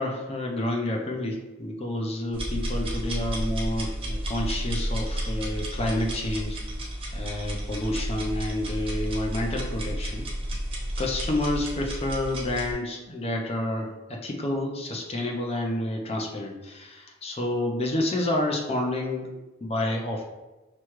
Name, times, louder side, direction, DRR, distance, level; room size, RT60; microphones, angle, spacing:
voice 1, 0.0-6.6 7.1-10.3 11.0-20.2, left 1 dB, 30° left, 1 dB, 0.6 m, -29 dB
sound 1, 2.3-12.7, equal, 30° right, 0.8 m, -31 dB
6.0 x 2.3 x 3.0 m, 1.1 s
head